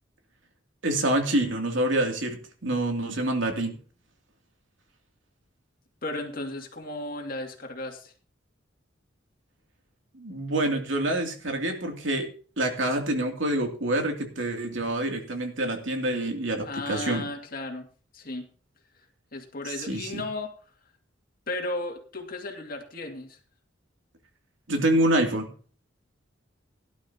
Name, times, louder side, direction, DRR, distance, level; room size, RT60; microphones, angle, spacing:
voice 1, 0.8-3.8 10.1-17.3 19.6-20.2 24.7-25.5, right 1 dB, 85° right, 3 dB, 2.7 m, -27 dB
voice 2, 6.0-8.1 16.6-17.9 18.1-18.5 19.3-20.5 21.5-23.4, left 2 dB, 50° left, 3 dB, 2.3 m, -34 dB
17.0 x 11.5 x 2.9 m, 0.40 s
head